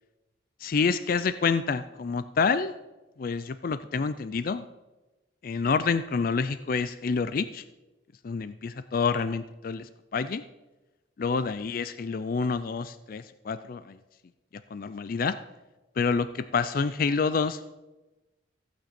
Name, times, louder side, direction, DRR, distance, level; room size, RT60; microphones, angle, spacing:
voice 1, 0.6-2.7 3.2-4.6 5.4-7.6 8.2-10.4 11.2-14.0 14.7-15.3 16.0-17.7, left 5 dB, 50° left, 13 dB, 0.4 m, -28 dB
15.0 x 8.7 x 4.3 m, 1.1 s
head